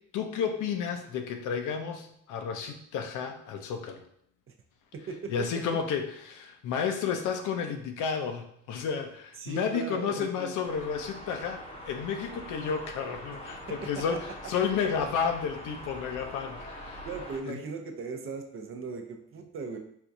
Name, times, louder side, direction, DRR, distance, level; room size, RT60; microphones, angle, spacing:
voice 1, 0.1-4.0 5.3-17.1 17.5-17.6, left 6 dB, 80° left, 6 dB, 0.5 m, -32 dB
voice 2, 9.4-10.6 14.0-14.2 17.0-19.8, right 4 dB, 45° right, 3 dB, 0.6 m, -38 dB
sound 1, 10.6-17.4, left 1 dB, 20° left, 0.7 m, -43 dB
4.3 x 2.3 x 2.6 m, 0.70 s
cardioid pair, 90°, 30 cm